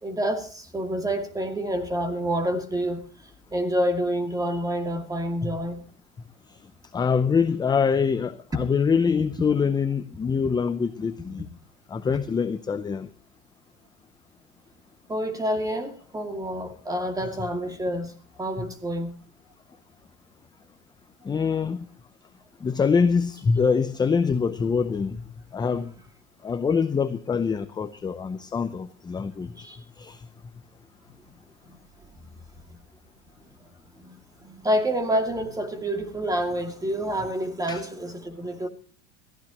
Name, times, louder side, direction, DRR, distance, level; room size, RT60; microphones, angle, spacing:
voice 1, 0.0-5.8 12.1-12.2 15.1-18.1 18.4-19.1 29.5-29.8 31.7-32.1 34.0-38.7, equal, 10° right, 2.3 m, -28 dB
voice 2, 6.9-11.5 11.9-13.1 21.2-21.8 22.6-25.2 25.5-25.9 26.4-29.6 30.0-30.2 37.7-37.8, left 5 dB, 10° left, 0.6 m, -24 dB
22.0 x 15.0 x 3.0 m
supercardioid pair, 135°, 35 cm